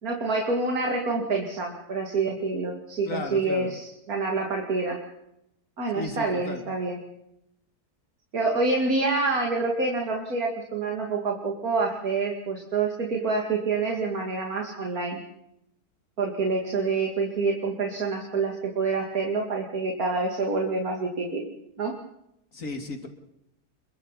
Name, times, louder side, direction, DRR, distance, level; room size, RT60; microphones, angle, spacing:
voice 1, 0.0-5.0 5.8-7.0 8.3-15.2 16.2-21.5 21.8-21.9, right 3 dB, 60° right, 0 dB, 3.0 m, -27 dB
voice 2, 3.0-3.7 5.9-6.6 22.5-23.1, left 2 dB, 50° left, 4 dB, 3.0 m, -34 dB
28.0 x 23.0 x 4.2 m, 0.80 s
omnidirectional pair, 1.7 m